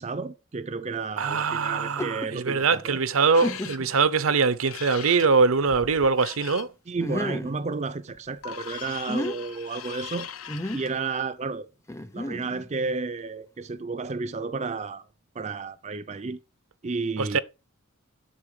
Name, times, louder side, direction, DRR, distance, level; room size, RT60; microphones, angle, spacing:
voice 1, 0.0-3.0 6.9-10.3 10.7-11.7 12.1-15.0 15.4-16.4 16.8-17.4, right 4 dB, 30° right, 0.5 m, -32 dB
voice 2, 1.2-6.7 17.2-17.4, right 4 dB, 70° right, 0.7 m, -23 dB
sound 1, 1.8-2.3 2.9-3.0 3.4-4.0 4.6-4.7 7.0-7.6 8.9-9.4 10.5-10.9 11.9-12.7, left 1 dB, 15° left, 0.7 m, -32 dB
sound 2, 3.3-3.8 4.7-6.7 8.1-10.9, left 9 dB, 70° left, 0.8 m, -40 dB
9.7 x 6.5 x 4.9 m
head